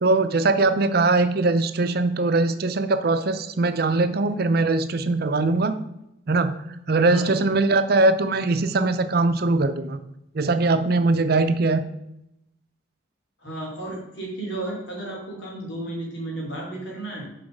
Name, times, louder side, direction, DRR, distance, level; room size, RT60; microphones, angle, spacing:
voice 1, 0.0-5.8 6.3-6.5 6.9-10.0 10.3-11.8, right 3 dB, 55° right, 10 dB, 0.6 m, -21 dB
voice 2, 13.4-17.2, right 2 dB, 80° left, -2 dB, 3.2 m, -33 dB
7.0 x 4.9 x 5.2 m, 0.84 s
head